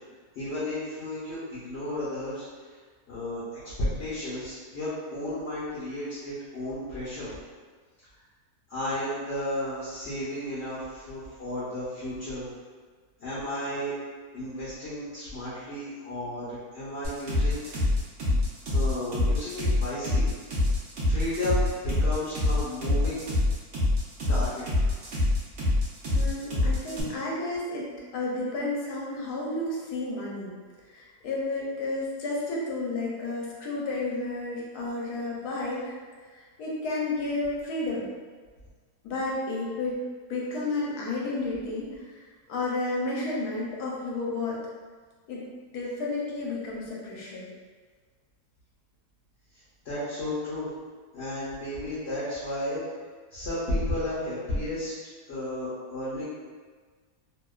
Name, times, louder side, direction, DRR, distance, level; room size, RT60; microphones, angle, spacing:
voice 1, 0.4-2.5 3.1-7.3 8.7-12.5 13.2-14.0 14.3-17.6 18.3-18.4 18.7-20.3 21.0-23.3 24.3-24.7 49.8-50.7 51.1-52.8 53.3-54.9 55.3-56.2, left 1 dB, 55° left, -10 dB, 0.8 m, -33 dB
sound 1, 17.0-27.0, left 2 dB, 60° right, 0.7 m, -25 dB
voice 2, 26.1-30.5 30.9-35.9 36.6-38.1 39.0-40.0 40.3-42.2 42.5-44.6 45.3-45.4 45.7-47.4, left 2 dB, 75° left, -4 dB, 1.1 m, -31 dB
2.8 x 2.2 x 2.2 m, 1.5 s
omnidirectional pair, 1.7 m